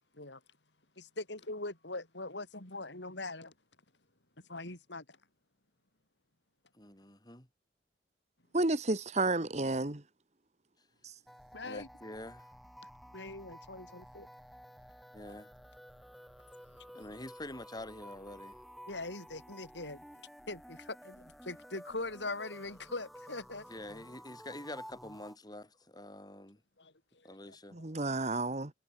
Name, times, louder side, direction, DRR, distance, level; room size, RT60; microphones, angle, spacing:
voice 1, 1.0-3.5 4.5-5.2 11.5-11.9 13.1-14.3 16.8-16.9 18.9-20.0 20.5-23.7 26.8-28.1, left 2 dB, 90° left, 6.0 m, -42 dB
voice 2, 6.8-7.5 11.6-12.5 15.1-15.5 16.9-18.6 23.7-26.6 27.2-27.8, left 1 dB, 25° left, 7.0 m, -46 dB
voice 3, 8.5-10.0 11.0-11.1 27.7-28.7, right 2 dB, 40° right, 1.5 m, -31 dB
sound 1, 11.3-25.4, equal, ahead, 2.4 m, -53 dB
head